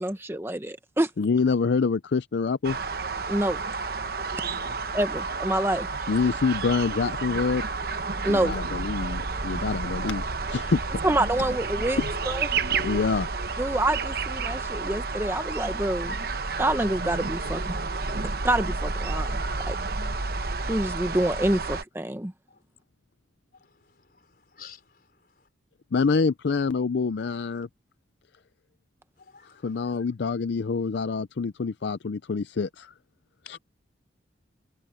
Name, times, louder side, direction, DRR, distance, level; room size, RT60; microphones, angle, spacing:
voice 1, 0.0-1.1 3.3-3.6 4.9-5.9 8.2-8.6 11.0-12.5 13.6-16.2 16.6-17.8 18.4-19.8 20.7-22.3, right 1 dB, 15° right, 0.8 m, -27 dB
voice 2, 1.2-2.8 6.1-7.6 8.3-11.0 12.0-12.1 12.8-13.3 25.9-27.7 29.4-32.9 33.5-33.6, left 4 dB, 65° left, 0.5 m, -26 dB
sound 1, 2.6-21.8, right 4 dB, 50° right, 1.0 m, -30 dB
voice 3, 4.1-5.0 5.5-5.6 16.0-16.2 22.5-22.6 24.5-24.8 29.2-29.6 33.4-33.6, left 3 dB, 50° left, 4.6 m, -45 dB
head